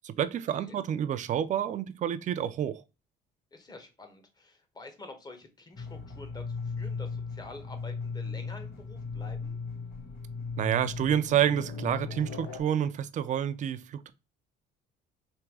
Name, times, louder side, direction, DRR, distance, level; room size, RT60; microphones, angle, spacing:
voice 1, 0.0-2.8 10.6-14.1, right 10 dB, 45° right, 0.5 m, -29 dB
voice 2, 3.5-9.6, left 2 dB, 25° left, 1.2 m, -48 dB
sound 1, 5.7-12.6, left 4 dB, 85° left, 1.9 m, -37 dB
3.6 x 2.8 x 4.6 m
cardioid pair, 110°, 17 cm